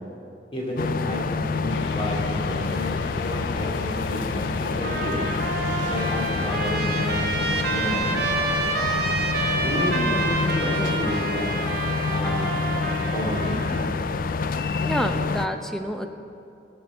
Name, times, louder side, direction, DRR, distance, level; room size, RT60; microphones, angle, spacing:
voice 1, 0.5-4.4 4.8-5.2 5.9-8.2 9.5-11.5 12.1-12.5 13.1-13.8, equal, 35° left, -2 dB, 2.6 m, -31 dB
sound 1, 0.8-15.5, left 4 dB, 55° left, 0.4 m, -27 dB
sound 2, 1.7-10.6, left 3 dB, 85° left, 0.8 m, -39 dB
Trumpet, 4.8-13.9, right 3 dB, 60° right, 1.3 m, -28 dB
voice 2, 9.9-10.3 14.8-16.1, equal, 5° left, 5 dB, 0.7 m, -28 dB
15.0 x 7.1 x 7.1 m, 2.6 s
head